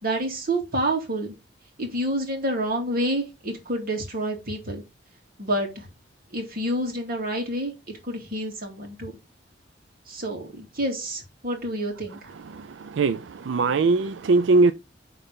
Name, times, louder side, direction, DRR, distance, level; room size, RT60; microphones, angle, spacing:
voice 1, 0.0-1.3 1.8-4.8 5.4-5.9 6.3-9.1 10.1-12.2, right 1 dB, 55° right, 2.6 m, -28 dB
voice 2, 12.5-14.7, right 3 dB, 85° right, 0.4 m, -21 dB
9.8 x 4.0 x 3.7 m
head